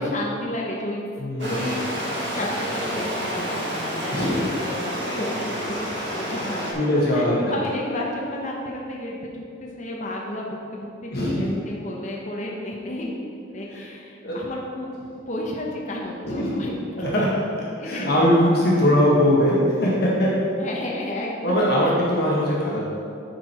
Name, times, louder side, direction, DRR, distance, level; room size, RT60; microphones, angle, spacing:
voice 1, 0.0-1.1 1.4-1.8 2.3-13.3 13.5-14.9 15.3-17.3 17.8-18.1 20.6-21.7, left 1 dB, 40° left, -2 dB, 0.9 m, -32 dB
voice 2, 1.2-1.6 4.1-4.5 6.7-7.5 11.1-11.5 13.7-13.8 14.2-14.3 16.2-16.6 17.0-17.3 17.8-20.3 21.4-22.8, equal, 55° left, -6 dB, 1.6 m, -21 dB
Stream, 1.4-6.7, equal, 65° right, 1.5 m, -29 dB
9.8 x 4.5 x 4.4 m, 2.5 s
head